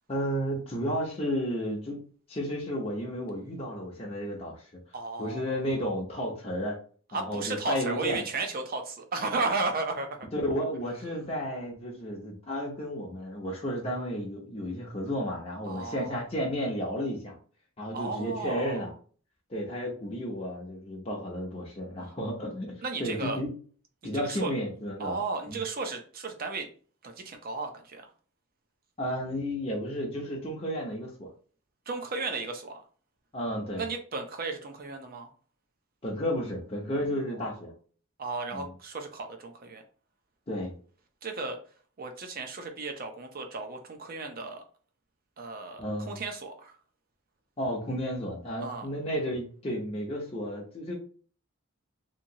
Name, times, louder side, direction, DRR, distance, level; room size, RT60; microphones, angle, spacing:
voice 1, 0.1-2.0 2.3-4.6 5.2-6.8 7.1-8.2 10.3-17.4 17.8-18.9 19.5-23.5 24.0-25.2 25.5-25.6 29.0-31.3 33.3-33.9 36.0-37.7 38.5-38.7 40.5-40.7 45.8-46.2 47.6-50.9, equal, 30° left, -2 dB, 0.7 m, -32 dB
voice 2, 4.9-5.4 7.1-10.1 15.7-16.2 17.9-18.8 22.8-23.4 24.0-24.5 25.0-26.7 27.0-28.0 31.9-32.8 33.8-35.3 38.2-39.8 41.2-41.6 42.0-44.6 45.4-46.7 48.6-48.9, right 3 dB, 45° right, 5 dB, 0.6 m, -34 dB
2.9 x 2.8 x 2.7 m, 0.41 s
head